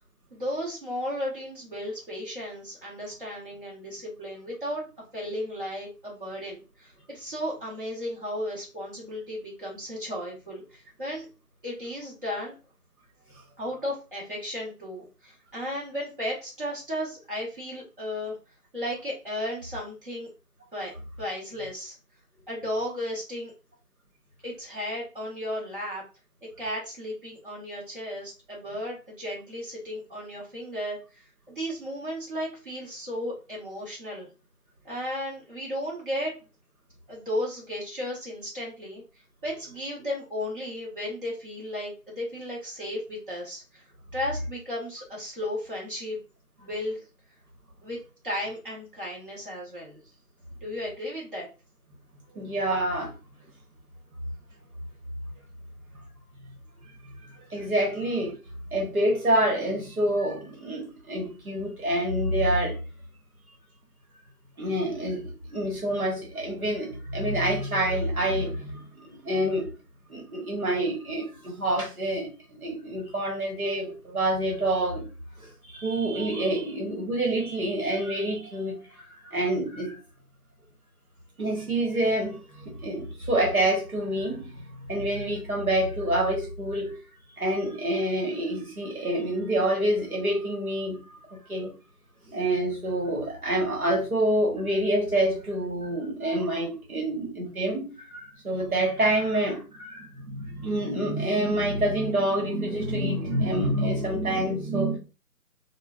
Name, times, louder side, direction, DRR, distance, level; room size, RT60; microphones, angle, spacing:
voice 1, 0.3-4.8 5.1-11.3 11.6-12.5 13.6-18.3 18.7-20.3 20.7-21.9 22.5-23.5 24.4-26.0 26.6-34.3 34.8-36.3 37.1-39.0 39.4-46.2 46.6-47.0 47.8-50.0 50.6-51.5 57.9-58.0, left 1 dB, 35° right, 1.2 m, -34 dB
voice 2, 52.3-53.1 57.2-58.3 58.7-62.8 64.6-69.7 70.1-75.1 75.4-80.0 81.4-87.0 87.4-91.0 91.3-91.8 92.3-105.0, right 1 dB, 65° right, 1.3 m, -27 dB
3.1 x 2.2 x 2.4 m
figure-of-eight pair, 155°, 47 cm